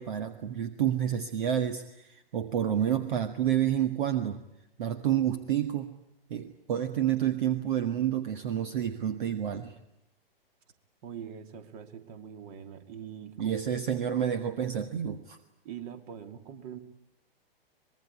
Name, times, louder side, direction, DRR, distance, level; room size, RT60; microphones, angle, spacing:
voice 1, 0.0-4.4 4.8-5.9 6.3-9.8 13.4-15.4, right 10 dB, 55° right, 9 dB, 1.7 m, -29 dB
voice 2, 11.0-13.6 15.6-16.8, right 8 dB, 40° right, 8 dB, 2.7 m, -43 dB
25.0 x 21.5 x 9.7 m, 0.82 s
figure-of-eight pair, 115°, 29 cm